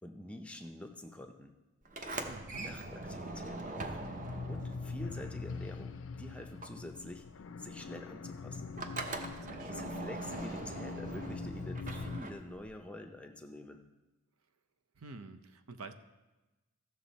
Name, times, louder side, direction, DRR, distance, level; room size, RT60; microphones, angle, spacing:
voice 1, 0.0-1.5 2.5-4.0 4.5-7.3 7.6-8.7 9.6-13.8, left 1 dB, 5° left, 4 dB, 0.5 m, -47 dB
Sliding door, 1.8-6.1 6.4-12.8, right 2 dB, 35° right, 0.7 m, -42 dB
voice 2, 2.3-2.8 9.4-9.9 15.0-15.9, right 3 dB, 85° right, 8 dB, 0.7 m, -48 dB
sound 1, 3.5-12.2, left 4 dB, 65° left, 0.4 m, -43 dB
15.0 x 6.4 x 4.1 m, 1.1 s
head